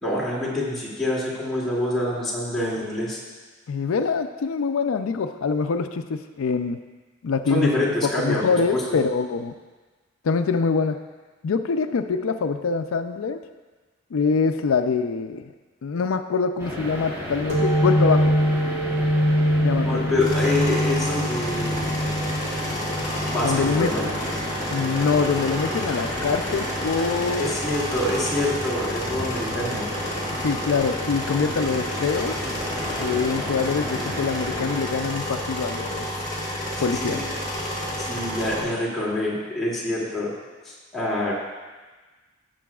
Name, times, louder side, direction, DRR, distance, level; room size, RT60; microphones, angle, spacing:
voice 1, 0.0-3.2 7.5-8.8 19.7-21.9 23.2-24.1 27.3-29.9 36.7-37.2 38.0-40.3 40.6-41.3, left 1 dB, ahead, -9 dB, 2.4 m, -26 dB
voice 2, 3.7-6.8 7.2-9.5 10.2-11.0 11.4-13.4 14.1-15.5 15.8-18.4 19.6-20.1 23.4-23.9 24.7-27.5 30.4-32.4 33.0-36.1 36.8-37.2, left 5 dB, 85° left, 8 dB, 0.4 m, -24 dB
sound 1, 16.6-34.8, equal, 15° right, 2.2 m, -34 dB
sound 2, 17.5-24.8, equal, 70° right, 1.6 m, -24 dB
sound 3, 20.2-38.6, equal, 30° left, 2.8 m, -30 dB
15.5 x 6.9 x 2.4 m, 1.3 s
head